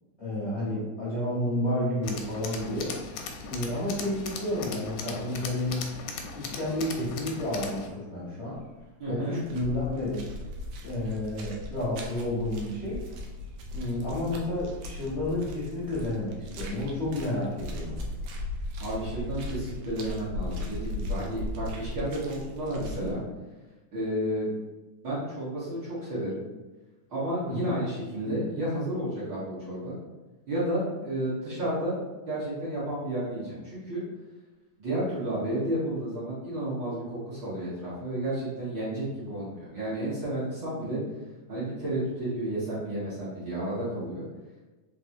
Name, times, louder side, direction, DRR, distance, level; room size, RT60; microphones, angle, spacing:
voice 1, 0.2-2.9 3.5-5.9 6.3-8.6 9.1-10.2 10.8-13.0 13.7-18.0 27.5-27.8, left 1 dB, 65° left, -9 dB, 0.6 m, -31 dB
Tools, 2.0-7.9, left 5 dB, 80° left, 1.7 m, -38 dB
sound 1, 8.6-8.8 9.1-23.2, left 2 dB, 80° right, 1.5 m, -38 dB
voice 2, 9.0-9.4 18.8-23.2 23.9-24.5 25.0-26.4 27.1-29.9 30.5-31.9 32.3-34.0 34.8-41.0 41.5-44.2, right 1 dB, 50° right, -9 dB, 1.6 m, -31 dB
4.7 x 3.8 x 2.7 m, 1.2 s
omnidirectional pair, 3.5 m